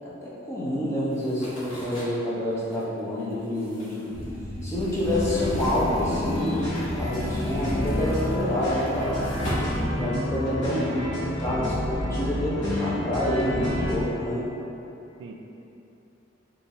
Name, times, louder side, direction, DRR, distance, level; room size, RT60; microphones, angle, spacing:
voice 1, 0.0-4.2 4.6-6.6 7.0-9.2 9.8-14.4, left 1 dB, 15° left, -8 dB, 0.8 m, -28 dB
sound 1, 1.1-6.5 6.8-10.7, equal, 85° left, 1.4 m, -39 dB
sound 2, 4.1-10.2, equal, 45° right, 1.0 m, -37 dB
sound 3, 5.0-14.0, left 1 dB, 65° left, 0.9 m, -29 dB
voice 2, 9.7-10.2 15.2-15.3, right 3 dB, 65° right, 3 dB, 0.3 m, -40 dB
5.4 x 2.6 x 3.0 m, 2.9 s
head